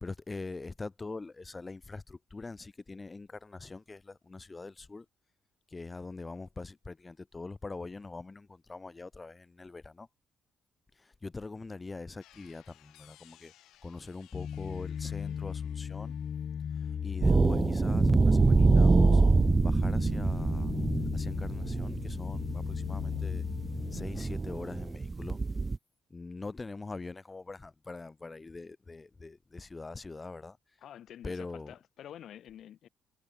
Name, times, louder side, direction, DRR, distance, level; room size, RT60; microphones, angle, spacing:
voice 1, 0.0-5.1 5.7-10.1 10.9-13.5 13.8-16.2 16.7-19.2 19.6-20.7 21.1-23.4 23.9-25.4 26.1-30.8 31.2-31.7, left 3 dB, 25° left, 1.0 m, -43 dB
sound 1, 12.2-19.4 19.6-20.5, left 15 dB, 85° left, 3.1 m, -64 dB
sound 2, 14.3-24.1, left 8 dB, 55° left, 0.7 m, -36 dB
sound 3, 17.2-25.8, right 3 dB, 25° right, 0.3 m, -26 dB
voice 2, 30.8-32.9, left 10 dB, 70° left, 1.8 m, -48 dB
cardioid pair, 90°, 0 cm